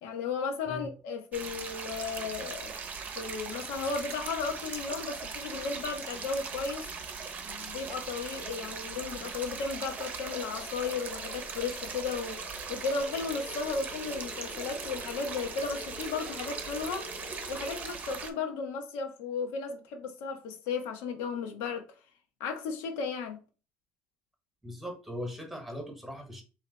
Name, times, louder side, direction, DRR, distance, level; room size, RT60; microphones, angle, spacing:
voice 1, 0.0-2.7 3.2-6.8 7.4-12.4 12.7-17.0 17.5-21.8 22.4-23.4, left 5 dB, 80° left, 1.0 m, -35 dB
sound 1, 1.3-18.3, right 5 dB, 35° right, 0.7 m, -40 dB
sound 2, 9.7-17.8, left 4 dB, 35° left, 0.8 m, -48 dB
voice 2, 24.6-26.4, left 1 dB, 5° right, 1.1 m, -39 dB
3.3 x 2.8 x 4.0 m
cardioid pair, 140°, 5 cm